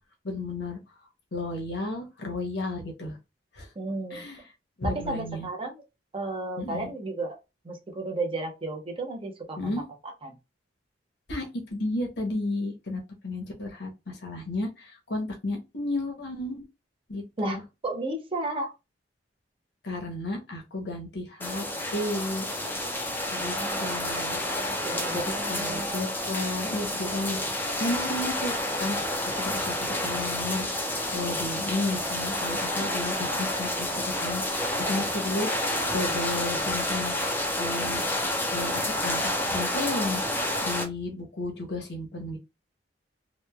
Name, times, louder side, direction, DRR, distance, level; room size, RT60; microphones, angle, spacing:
voice 1, 0.2-0.8 1.3-3.2 3.5-3.7 4.1-4.4 4.8-5.5 6.6-6.9 9.6-9.8 11.3-16.6 17.1-17.6 19.8-21.7 21.9-22.5 23.3-24.4 25.1-27.4 27.8-30.7 31.1-34.4 34.8-35.5 35.9-37.1 37.6-38.0 38.5-40.2 40.6-42.4, left 2 dB, 65° left, 0.8 m, -33 dB
voice 2, 3.8-4.2 4.8-5.8 6.1-7.4 7.6-10.4 17.4-18.7 23.5-26.0 34.8-35.1 37.6-37.7, right 2 dB, 30° right, 0.6 m, -34 dB
sound 1, 21.4-40.8, left 1 dB, 10° left, 0.4 m, -29 dB
2.9 x 2.2 x 2.2 m
head